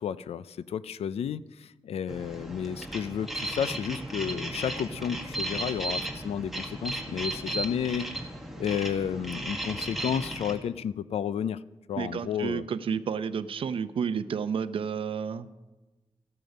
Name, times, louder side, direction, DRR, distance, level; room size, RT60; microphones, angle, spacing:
voice 1, 0.0-8.1 8.6-11.6 11.9-12.6, left 8 dB, 85° left, 17 dB, 0.5 m, -32 dB
Geiger (simulation) (Dosimeter), 2.1-10.6, right 1 dB, ahead, 1.6 m, -35 dB
voice 2, 12.0-15.5, right 7 dB, 60° right, 13 dB, 0.6 m, -31 dB
14.0 x 13.0 x 5.3 m, 1.1 s
wide cardioid pair, 170°, 10 cm